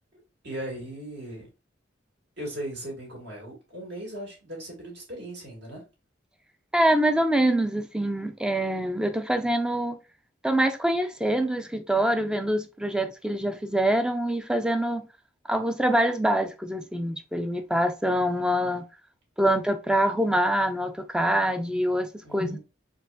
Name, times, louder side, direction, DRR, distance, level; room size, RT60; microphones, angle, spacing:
voice 1, 0.1-1.5 2.4-5.8 22.2-22.6, right 1 dB, 65° right, 2.3 m, -38 dB
voice 2, 6.7-10.0 10.4-15.1 15.5-18.9 19.4-22.6, right 1 dB, 5° right, 0.4 m, -25 dB
4.6 x 3.0 x 2.5 m
head